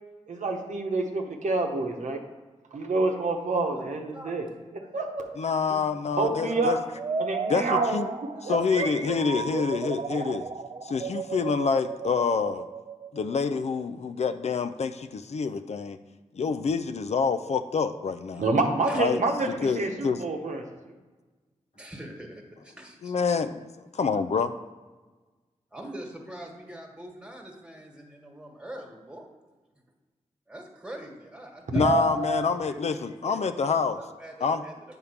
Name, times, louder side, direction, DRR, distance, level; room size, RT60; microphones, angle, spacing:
voice 1, 0.3-2.2 2.7-4.4 4.7-5.3 6.2-6.8 7.2-8.1 8.4-9.2 18.4-20.6 31.7-32.5, right 3 dB, 75° right, 2 dB, 1.0 m, -27 dB
voice 2, 5.4-6.8 7.5-8.1 8.4-10.4 10.8-12.7 13.1-16.0 16.3-18.4 18.9-19.2 19.6-20.2 23.0-24.5 31.7-34.0 34.4-34.6, left 5 dB, 60° left, 10 dB, 0.4 m, -27 dB
voice 3, 6.2-6.8 7.2-7.4 18.3-18.4 18.8-19.0 21.7-23.1 25.7-29.3 30.5-34.7, right 1 dB, 10° right, 1 dB, 1.6 m, -43 dB
sound 1, 6.9-13.6, right 5 dB, 45° right, 0.4 m, -34 dB
7.9 x 3.6 x 5.8 m, 1.3 s
cardioid pair, 55°, 13 cm